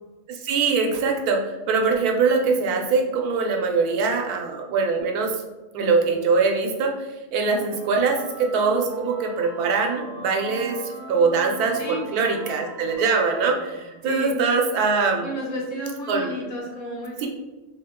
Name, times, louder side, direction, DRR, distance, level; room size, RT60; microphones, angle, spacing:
voice 1, 0.3-5.4 5.7-15.3 16.1-16.4 17.2-17.3, right 4 dB, 85° right, 2 dB, 1.2 m, -23 dB
sound 1, 7.3-14.3, equal, 25° right, 1.1 m, -40 dB
voice 2, 15.2-17.3, equal, 60° left, -2 dB, 1.2 m, -32 dB
3.1 x 2.8 x 3.5 m, 1.2 s
omnidirectional pair, 1.6 m